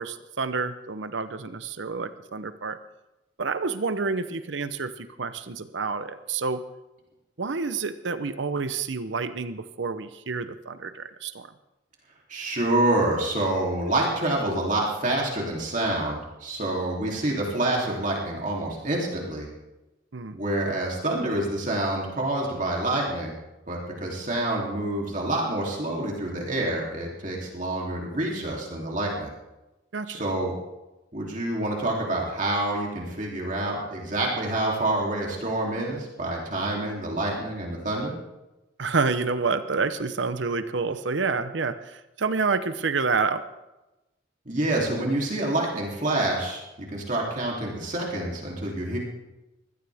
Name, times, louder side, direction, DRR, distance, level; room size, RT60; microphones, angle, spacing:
voice 1, 0.0-2.8 3.4-6.6 7.4-11.5 20.1-20.4 29.9-30.2 38.8-43.4, right 4 dB, 75° right, 12 dB, 0.8 m, -28 dB
voice 2, 12.3-19.5 20.3-23.3 23.7-29.3 30.1-30.6 31.1-38.2 44.4-49.0, right 1 dB, 40° right, -2 dB, 3.1 m, -27 dB
23.0 x 16.5 x 3.5 m, 1.0 s
head